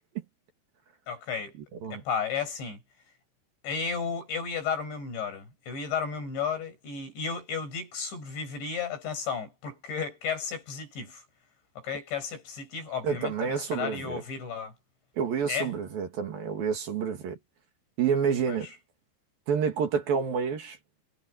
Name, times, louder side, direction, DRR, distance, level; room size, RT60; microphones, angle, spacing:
voice 1, 1.1-1.5 1.9-2.8 3.6-11.2 11.8-14.7 15.5-15.7 18.5-18.6, left 6 dB, 75° left, 10.5 m, -33 dB
voice 2, 13.0-14.2 15.2-17.4 18.0-18.7 19.5-20.8, right 6 dB, 55° right, 3.9 m, -28 dB
omnidirectional pair, 5.2 m